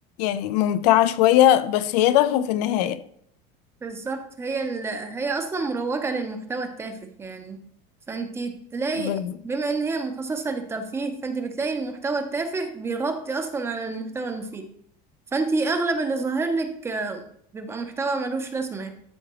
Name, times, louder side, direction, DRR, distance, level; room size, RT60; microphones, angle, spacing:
voice 1, 0.2-3.0 9.0-9.3, left 12 dB, 85° left, 0.6 m, -20 dB
voice 2, 3.8-7.6 8.1-14.7 15.3-17.2 17.5-18.9, right 3 dB, 10° right, 0.6 m, -28 dB
12.5 x 5.0 x 3.0 m
cardioid pair, 170°, 21 cm